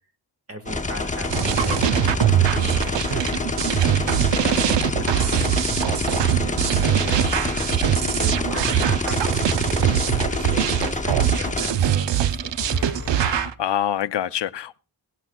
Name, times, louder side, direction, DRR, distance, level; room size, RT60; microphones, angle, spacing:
voice 1, 0.5-3.5 4.0-5.5 6.0-7.3 8.2-12.5, right 1 dB, 35° right, 5 dB, 1.4 m, -38 dB
sound 1, 0.7-11.7, left 3 dB, 15° left, 0.9 m, -27 dB
sound 2, 1.3-3.5 3.9-6.3 6.8-13.5, left 4 dB, 45° left, 0.9 m, -36 dB
sound 3, 1.3-13.5, right 10 dB, 85° right, 0.6 m, -22 dB
voice 2, 13.2-14.8, left 10 dB, 75° left, 15 dB, 0.6 m, -26 dB
17.5 x 17.0 x 2.3 m, 0.35 s
wide cardioid pair, 120°, 42 cm